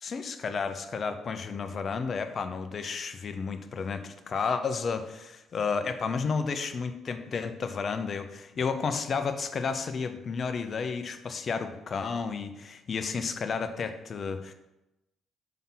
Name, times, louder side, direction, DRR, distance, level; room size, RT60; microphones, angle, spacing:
voice 1, 0.0-14.5, left 5 dB, 50° left, 8 dB, 0.5 m, -32 dB
5.6 x 3.6 x 5.5 m, 0.94 s
hypercardioid pair, 45°, 0 cm